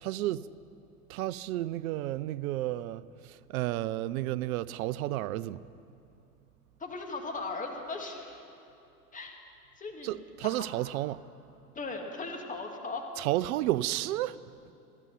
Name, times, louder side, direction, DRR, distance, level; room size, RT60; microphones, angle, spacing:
voice 1, 0.0-0.5 1.1-5.6 10.0-11.2 13.2-14.5, right 15 dB, 65° right, 0.6 m, -32 dB
voice 2, 6.8-8.4 9.1-9.4 9.8-10.6 11.7-13.0, left 3 dB, 15° left, 2.3 m, -38 dB
14.5 x 12.0 x 8.4 m
hypercardioid pair, 100°, 46 cm